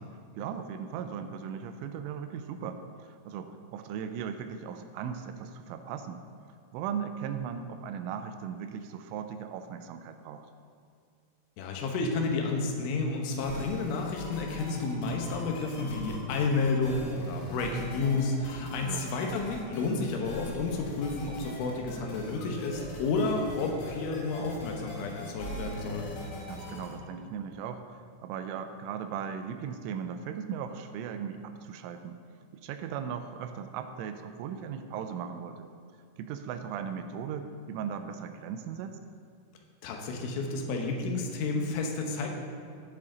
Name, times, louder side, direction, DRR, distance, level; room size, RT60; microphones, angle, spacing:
voice 1, 0.4-6.2 6.7-10.5 18.8-19.3 26.5-32.2 32.5-35.7 36.2-39.0, right 7 dB, 85° right, 8 dB, 3.1 m, -38 dB
voice 2, 11.6-26.1 39.8-42.3, left 3 dB, 80° left, 1 dB, 3.5 m, -31 dB
sound 1, 13.4-26.9, equal, 60° left, 3.8 m, -41 dB
15.0 x 7.6 x 3.8 m, 2.3 s
omnidirectional pair, 5.7 m